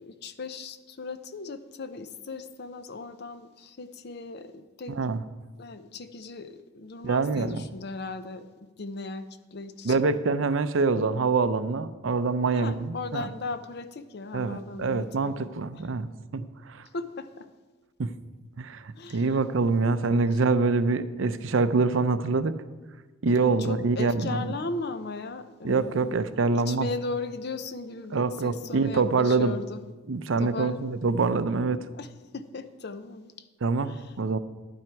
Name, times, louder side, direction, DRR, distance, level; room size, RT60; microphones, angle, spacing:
voice 1, 0.0-5.0 5.6-10.0 12.5-15.3 15.7-15.9 16.9-17.5 18.9-19.3 23.3-26.2 26.5-29.8 30.4-30.9 32.0-33.5 33.8-34.1, left 3 dB, 55° left, 11 dB, 0.6 m, -37 dB
voice 2, 7.0-7.6 9.8-13.3 14.3-16.8 18.0-18.1 18.6-22.6 23.2-24.5 25.6-26.9 28.1-29.6 30.1-31.8 33.6-34.4, right 4 dB, 75° right, 13 dB, 0.5 m, -25 dB
11.5 x 9.0 x 4.6 m, 1.3 s
head